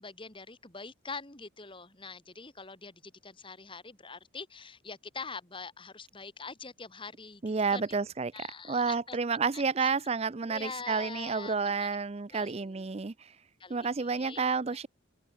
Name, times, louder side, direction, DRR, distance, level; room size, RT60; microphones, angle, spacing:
voice 1, 0.0-7.4 7.7-7.8 8.3-9.2 9.5-9.9 10.5-11.9 12.3-12.8 13.6-14.4, left 4 dB, 25° left, 2.2 m, -44 dB
voice 2, 7.4-13.3 13.7-14.9, right 5 dB, 30° right, 0.5 m, -30 dB
head